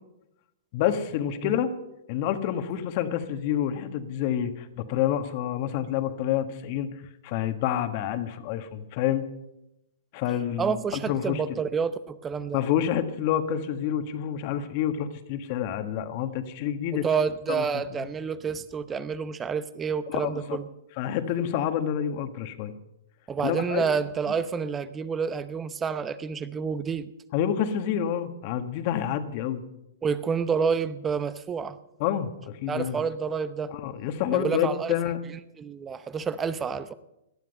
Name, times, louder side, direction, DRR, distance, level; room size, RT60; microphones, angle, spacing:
voice 1, 0.7-1.7 2.1-6.9 7.2-9.3 10.1-11.4 12.5-17.0 17.5-17.6 18.0-18.1 20.1-20.6 21.0-22.7 23.4-23.8 27.3-29.6 32.0-33.0 33.7-35.2, left 10 dB, 45° left, 9 dB, 1.5 m, -28 dB
voice 2, 10.6-12.6 16.9-20.7 23.3-27.1 30.0-31.8 32.7-33.7 34.3-34.9 35.6-36.9, right 6 dB, 15° right, 15 dB, 0.8 m, -29 dB
18.0 x 12.0 x 5.4 m, 0.88 s
hypercardioid pair, 130°, 0 cm